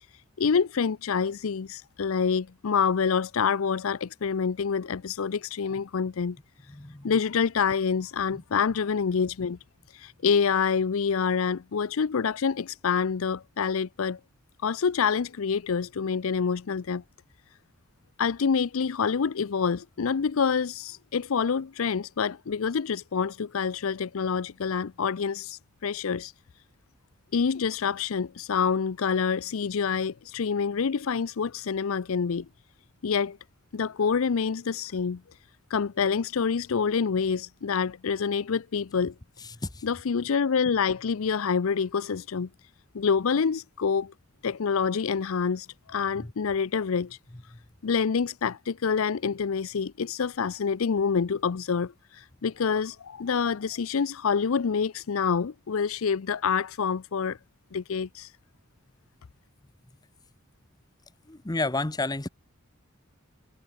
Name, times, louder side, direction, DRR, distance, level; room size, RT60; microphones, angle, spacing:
voice 1, 0.4-6.4 7.0-9.6 9.9-14.2 14.6-17.0 18.2-26.3 27.3-32.5 33.0-33.4 33.7-35.2 35.7-39.1 39.8-42.5 42.9-44.1 44.4-47.2 47.8-57.4 57.7-58.3, left 6 dB, 65° left, 0.5 m, -27 dB
voice 2, 6.7-7.1 39.5-39.8 46.2-46.3 61.3-62.3, left 2 dB, 15° left, 0.9 m, -31 dB
head